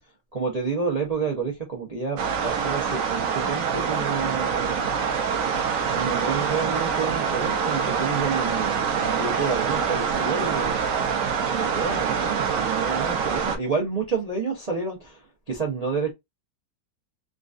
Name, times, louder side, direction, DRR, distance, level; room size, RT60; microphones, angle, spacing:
voice 1, 0.3-4.9 5.9-10.8 11.4-15.2 15.5-16.1, right 5 dB, 90° right, 0.3 m, -29 dB
sound 1, 2.2-13.6, right 6 dB, 65° right, 0.8 m, -25 dB
3.7 x 2.4 x 2.4 m
omnidirectional pair, 2.2 m